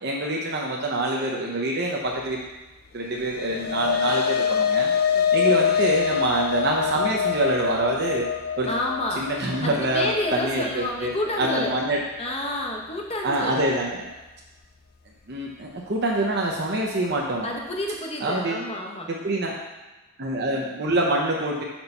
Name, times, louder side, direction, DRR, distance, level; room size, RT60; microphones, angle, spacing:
voice 1, 0.0-2.5 2.9-4.9 5.3-8.3 8.6-8.7 9.2-11.1 11.4-12.0 13.2-14.1 15.3-17.5 18.2-18.6 19.1-19.6 20.2-21.6, right 1 dB, 50° right, -2 dB, 0.7 m, -25 dB
sound 1, 3.1-11.7, left 7 dB, 45° left, 0.3 m, -25 dB
voice 2, 5.1-5.6 8.7-9.3 9.6-11.7 12.2-13.6 17.4-19.1, left 1 dB, 30° left, 0 dB, 0.8 m, -29 dB
5.5 x 4.4 x 5.3 m, 1.1 s
head